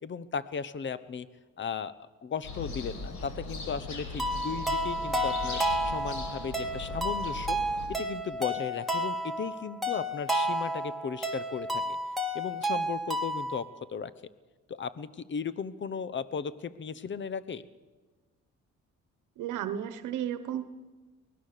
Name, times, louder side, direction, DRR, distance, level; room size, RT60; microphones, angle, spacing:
voice 1, 0.0-1.3 1.6-7.6 7.9-12.0 12.3-14.1 14.7-17.6, left 6 dB, 40° left, 16 dB, 1.0 m, -36 dB
sound 1, 2.4-7.9, left 3 dB, 75° left, 5.0 m, -39 dB
sound 2, 4.2-13.6, equal, ahead, 2.9 m, -31 dB
voice 2, 19.4-20.7, right 10 dB, 90° right, 11 dB, 1.1 m, -33 dB
24.0 x 19.0 x 6.8 m, 1.3 s
cardioid pair, 90°, 30 cm